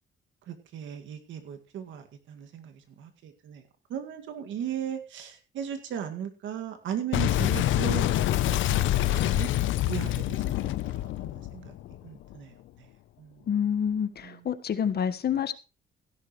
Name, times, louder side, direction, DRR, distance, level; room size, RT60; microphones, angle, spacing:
voice 1, 0.5-3.6 3.9-9.5 9.8-12.5 13.2-13.4 14.2-14.4, right 8 dB, 85° right, 2.1 m, -37 dB
Boom, 7.1-12.3, left 14 dB, 85° left, 0.7 m, -26 dB
voice 2, 13.5-15.5, left 8 dB, 55° left, 1.3 m, -28 dB
16.0 x 11.5 x 3.1 m
cardioid pair, 75°, 19 cm